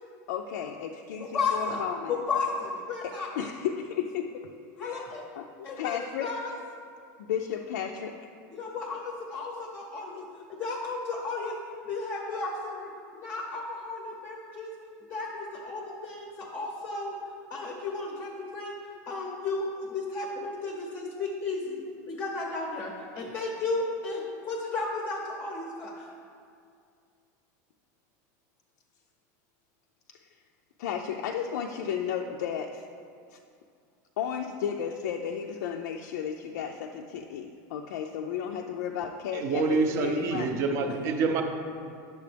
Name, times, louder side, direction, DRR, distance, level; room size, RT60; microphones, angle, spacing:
voice 1, 0.3-2.1 3.0-4.5 4.8-5.0 5.4-6.3 7.2-8.1 30.8-32.8 33.3-33.4 34.2-40.6, left 8 dB, 80° left, 2 dB, 0.5 m, -33 dB
voice 2, 1.2-1.8 2.1-3.3 4.8-5.2 5.6-6.6 8.5-11.6 11.8-14.7 15.1-17.1 17.5-18.8 19.1-21.8 22.1-26.1, left 3 dB, 20° left, 0 dB, 0.7 m, -34 dB
voice 3, 39.3-41.4, right 4 dB, 30° right, 5 dB, 0.6 m, -26 dB
9.4 x 6.7 x 3.4 m, 2.3 s
supercardioid pair, 175°, 9 cm